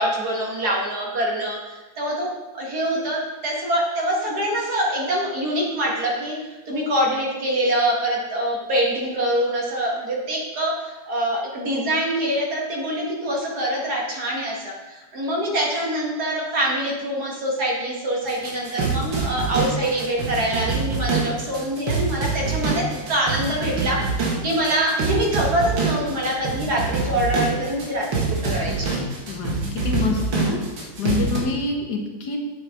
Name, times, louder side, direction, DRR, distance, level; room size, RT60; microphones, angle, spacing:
voice 1, 0.0-2.3 2.5-6.4 6.7-29.0, right 1 dB, 60° right, -3 dB, 2.2 m, -24 dB
sound 1, 18.3-31.4, right 4 dB, 90° right, 2.2 m, -25 dB
voice 2, 29.3-30.6 31.0-32.4, left 4 dB, 65° left, 2 dB, 1.6 m, -26 dB
9.2 x 7.6 x 3.7 m, 1.2 s
omnidirectional pair, 2.0 m